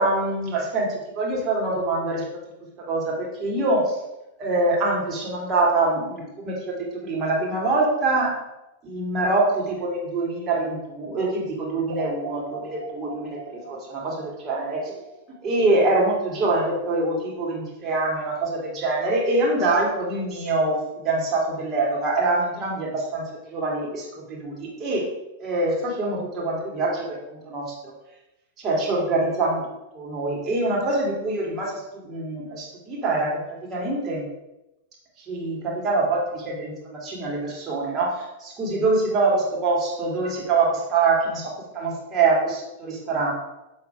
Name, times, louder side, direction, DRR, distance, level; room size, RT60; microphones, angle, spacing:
voice 1, 0.0-2.2 2.9-4.0 4.4-8.3 8.8-15.0 15.4-23.2 23.5-25.1 25.4-27.7 28.6-29.6 29.9-31.7 32.0-34.2 35.3-43.3, right 2 dB, 30° right, -3 dB, 2.5 m, -24 dB
sound 1, 11.9-15.9, right 4 dB, 90° right, 1.4 m, -39 dB
6.6 x 3.9 x 4.6 m, 0.94 s
hypercardioid pair, 120°, 0 cm